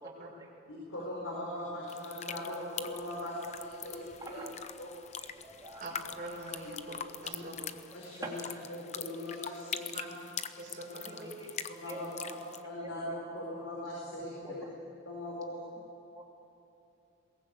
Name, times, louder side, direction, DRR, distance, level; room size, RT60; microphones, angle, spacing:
voice 1, 0.7-4.4 4.8-5.0 7.3-7.4 7.9-8.4 8.7-9.9 11.8-12.4 12.6-14.7 15.0-15.6, left 1 dB, 80° left, -3 dB, 4.7 m, -40 dB
sound 1, 1.9-12.6, left 8 dB, 35° left, 0.7 m, -43 dB
sound 2, 2.7-7.7, right 1 dB, 10° left, 7.7 m, -55 dB
voice 2, 4.2-4.5 5.3-5.8 6.9-7.0 7.6-7.7 8.0-8.3 11.1-12.0 12.3-12.4 12.8-12.9 14.5-14.7 16.1-16.2, right 2 dB, 20° right, -1 dB, 2.6 m, -46 dB
voice 3, 5.8-7.5 9.9-10.1 10.6-11.3, right 1 dB, 40° right, -6 dB, 5.6 m, -44 dB
21.5 x 18.5 x 8.4 m, 2.8 s
head